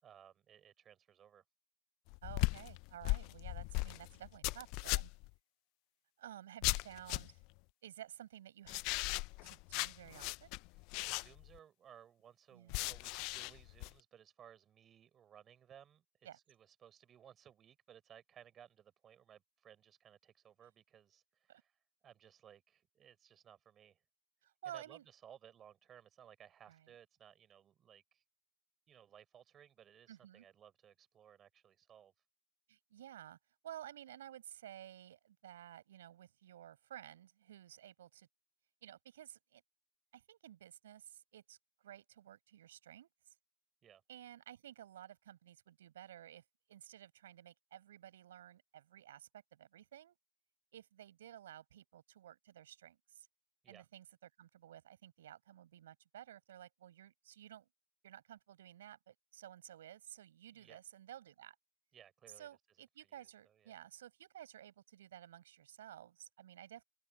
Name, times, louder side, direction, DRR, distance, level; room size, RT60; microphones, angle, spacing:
voice 1, 0.0-1.4 11.0-16.0 16.3-21.8 22.0-24.0 24.7-28.2 28.9-32.1 43.8-44.0 53.6-53.9 60.5-60.8 61.9-62.6 63.0-63.8, right 9 dB, 15° right, 5.6 m, -61 dB
sound 1, 2.1-5.3 6.6-7.5 8.7-11.6 12.7-13.9, left 25 dB, 25° left, 0.7 m, -38 dB
voice 2, 2.2-5.1 6.2-7.4 7.8-9.0 9.4-10.6 12.5-12.8 16.2-16.4 21.5-21.6 24.4-25.0 26.7-26.8 30.1-30.5 32.7-33.4 33.6-38.3 38.8-39.6 40.1-41.6 41.8-43.4 44.1-46.4 46.7-50.2 50.7-53.3 53.7-54.1 54.4-57.7 58.0-61.6 62.4-66.8, right 11 dB, 50° right, 6.9 m, -54 dB
hypercardioid pair, 145°, 0 cm